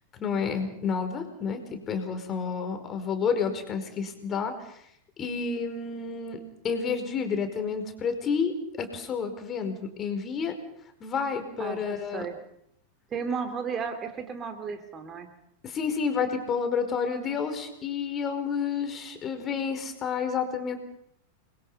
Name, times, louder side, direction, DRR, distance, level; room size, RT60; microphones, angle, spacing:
voice 1, 0.2-4.5 5.2-10.5 11.0-12.3 15.6-20.8, left 6 dB, 25° left, 7 dB, 4.9 m, -30 dB
voice 2, 11.6-12.3 13.1-15.3, right 5 dB, 25° right, 7 dB, 2.9 m, -34 dB
29.0 x 22.5 x 5.7 m, 0.72 s
figure-of-eight pair, 90°, 0 cm